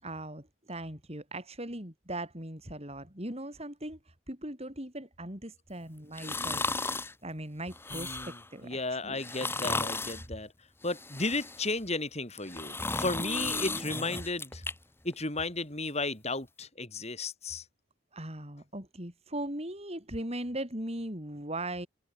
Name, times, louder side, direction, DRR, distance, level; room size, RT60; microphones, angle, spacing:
voice 1, 0.0-6.7 7.2-9.2 13.2-13.8 18.1-21.9, right 1 dB, 30° right, 6.7 m, -39 dB
sound 1, 6.1-7.1 7.7-8.5 9.2-10.2 10.8-11.8 12.3-14.7 15.1-15.2, left 3 dB, 10° left, 1.3 m, -35 dB
voice 2, 7.9-10.5 10.8-14.6 15.0-17.7, left 3 dB, 30° left, 5.4 m, -34 dB
head